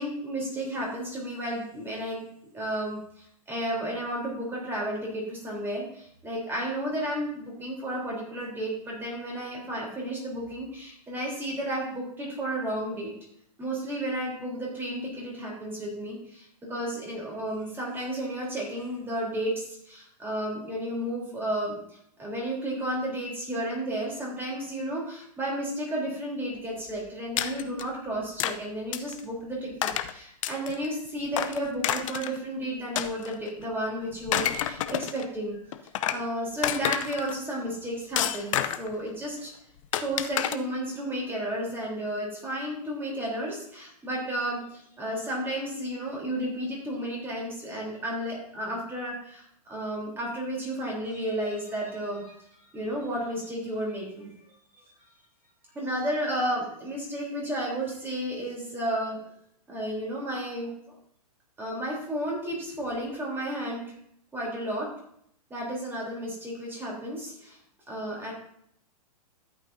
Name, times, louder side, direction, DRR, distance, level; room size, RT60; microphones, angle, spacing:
voice 1, 0.0-2.3 2.5-13.1 13.6-21.8 22.2-35.6 36.1-39.5 39.9-52.4 52.7-54.3 55.7-59.2 59.7-60.9 61.6-63.9 64.3-64.9 65.5-67.6 67.9-68.3, right 1 dB, 10° right, -3 dB, 3.7 m, -32 dB
sound 1, 27.4-27.8 28.4-28.6 28.9-29.2 29.8-30.1 30.4-30.8 31.3-32.4 32.9-33.6 34.1-35.2 35.7-36.2 36.6-37.3 38.2-38.9 39.9-40.5, left 11 dB, 50° left, 0.7 m, -29 dB
13.0 x 8.8 x 2.7 m, 0.69 s
hypercardioid pair, 135°, 21 cm